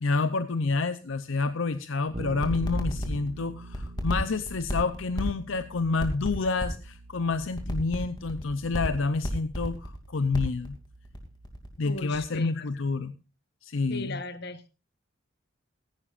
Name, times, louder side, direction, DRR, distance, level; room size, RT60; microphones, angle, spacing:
voice 1, 0.0-10.8 11.8-13.2 13.6-14.2, left 4 dB, 70° left, 12 dB, 0.6 m, -29 dB
Bass guitar, 2.1-12.0, right 2 dB, 30° right, 1.2 m, -46 dB
sound 1, 2.2-11.7 11.9-12.4, equal, 20° left, 2.6 m, -32 dB
voice 2, 11.8-12.7 13.9-14.7, left 2 dB, 55° left, 12 dB, 1.1 m, -38 dB
17.0 x 15.0 x 2.5 m, 0.30 s
head